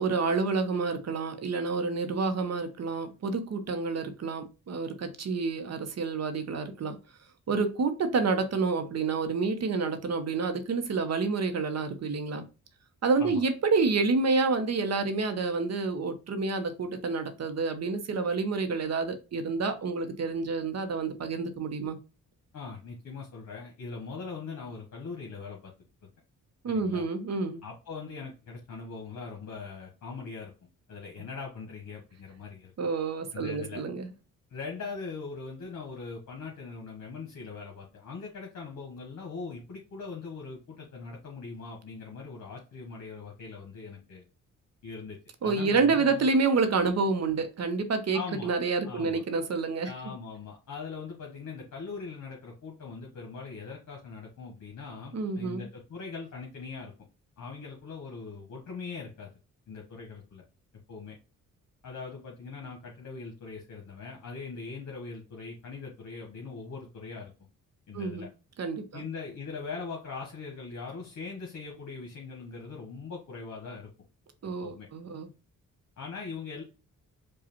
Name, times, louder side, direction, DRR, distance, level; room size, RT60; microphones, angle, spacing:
voice 1, 0.0-7.0 7.5-12.4 13.0-22.0 26.6-27.6 32.8-34.1 45.4-49.9 55.1-55.7 67.9-68.3 68.6-69.0 74.4-75.3, right 4 dB, 50° right, 0.8 m, -28 dB
voice 2, 22.5-25.7 26.7-27.0 27.6-30.5 30.9-32.7 33.3-33.8 34.5-44.2 44.8-46.3 48.1-48.5 48.8-49.2 49.8-56.9 57.4-59.3 59.7-60.4 60.9-61.2 61.8-67.3 67.9-68.3 68.9-73.9 74.6-74.9 76.0-76.6, left 4 dB, 55° left, 1.2 m, -41 dB
4.9 x 2.4 x 2.9 m
cardioid pair, 65°, 33 cm